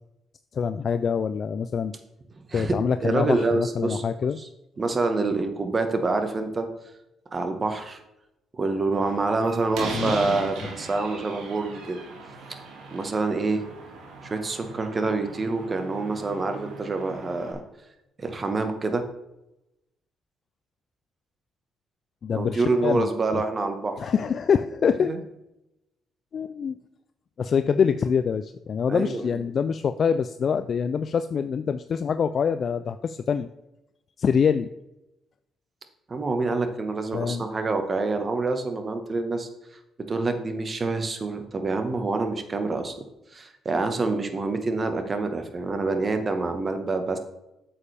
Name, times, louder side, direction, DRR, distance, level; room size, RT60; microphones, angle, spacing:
voice 1, 0.5-1.9 2.5-4.4 9.9-10.2 22.2-23.1 23.3-23.4 24.0-25.1 26.3-26.8 27.4-33.5 34.2-34.7 37.1-37.4, left 6 dB, 50° left, 10 dB, 0.3 m, -25 dB
voice 2, 3.0-4.0 4.4-4.5 4.8-6.7 7.3-8.0 8.5-12.0 12.9-13.6 14.2-17.6 18.2-19.1 22.3-24.0 25.0-25.2 28.9-29.3 36.1-39.5 40.1-42.9 43.3-47.2, right 3 dB, 35° right, 7 dB, 1.3 m, -26 dB
Slam, 8.9-17.5, right 4 dB, 90° right, 1.9 m, -39 dB
8.6 x 7.1 x 3.4 m, 0.91 s
cardioid pair, 90°, 0 cm